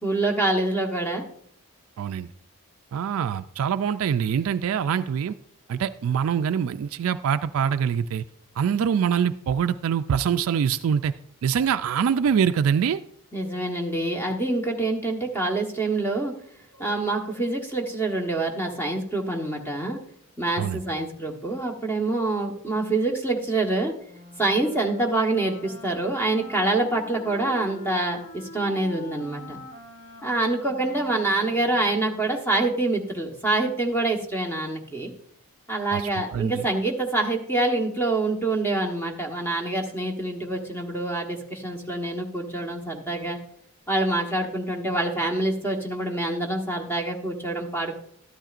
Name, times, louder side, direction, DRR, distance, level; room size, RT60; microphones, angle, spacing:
voice 1, 0.0-1.2 13.3-16.3 16.8-20.0 20.4-23.9 24.4-29.6 30.2-35.1 35.7-43.4 43.9-48.0, right 2 dB, 10° left, 1 dB, 1.2 m, -26 dB
voice 2, 2.0-2.3 2.9-5.3 5.7-8.2 8.6-11.1 11.4-13.0 20.6-20.8 35.9-36.7, right 7 dB, 65° right, 10 dB, 0.3 m, -24 dB
Wind instrument woodwind instrument, 24.0-32.2, left 2 dB, 35° left, 1.8 m, -44 dB
12.5 x 12.0 x 2.5 m, 0.67 s
head